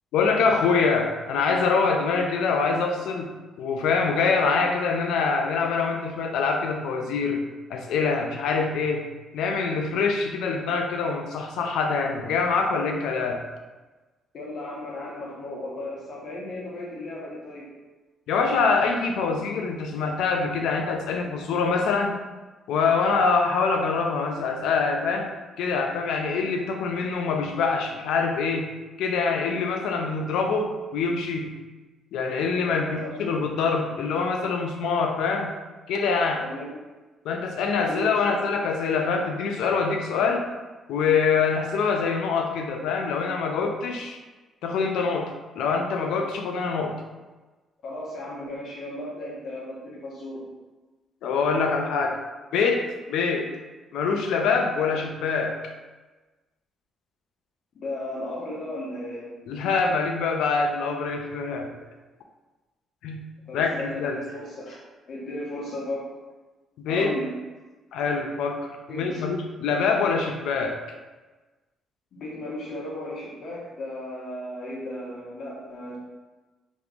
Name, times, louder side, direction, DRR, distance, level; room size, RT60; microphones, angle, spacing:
voice 1, 0.1-3.3 3.6-7.4 7.7-9.0 9.3-13.4 18.3-22.2 22.7-28.7 29.0-31.5 32.1-32.9 33.2-35.5 35.9-36.4 37.2-40.5 40.9-44.2 44.6-46.9 51.2-52.2 52.5-53.5 53.9-55.6 59.5-61.7 63.0-63.2 63.5-64.2 66.8-67.1 67.9-70.8, left 4 dB, 85° left, 3 dB, 0.4 m, -25 dB
voice 2, 14.3-17.7 32.7-33.2 36.4-36.9 37.9-38.4 47.8-50.5 57.7-59.3 63.5-64.8 65.1-66.1 66.9-67.3 68.9-69.3 72.1-76.0, left 1 dB, 60° left, -4 dB, 1.1 m, -35 dB
3.4 x 3.0 x 2.4 m, 1.2 s
cardioid pair, 90°, 0 cm